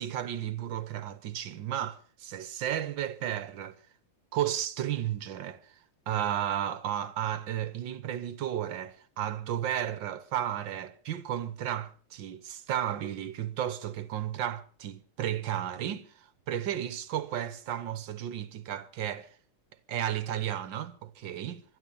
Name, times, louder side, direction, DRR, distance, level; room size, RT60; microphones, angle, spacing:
voice 1, 0.0-3.8 4.3-5.8 6.1-19.3 19.9-21.6, right 11 dB, 65° right, 1.6 m, -33 dB
25.0 x 10.5 x 5.4 m
omnidirectional pair, 2.3 m